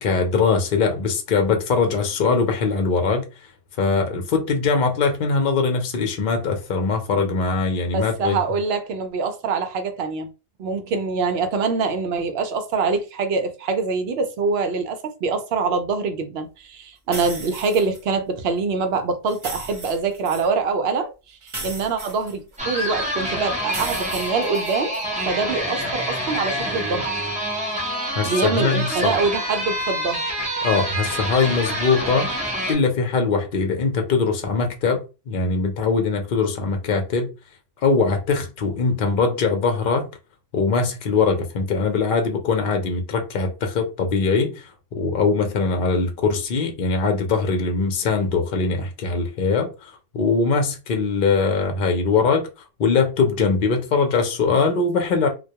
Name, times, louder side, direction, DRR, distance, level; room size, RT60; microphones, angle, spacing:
voice 1, 0.0-3.5 3.8-8.4 28.2-29.2 30.6-37.3 37.8-40.1 40.5-52.5 52.8-55.3, left 4 dB, 60° left, 0.7 m, -22 dB
voice 2, 7.9-10.3 10.6-25.0 25.3-27.1 28.3-30.2, right 4 dB, 75° right, 0.8 m, -24 dB
sound 1, 17.1-18.0 19.3-20.5 21.5-22.8 23.7-25.0, right 2 dB, 30° right, 0.9 m, -36 dB
sound 2, 22.6-32.7, equal, 10° right, 0.6 m, -27 dB
2.3 x 2.2 x 2.7 m
omnidirectional pair, 1.1 m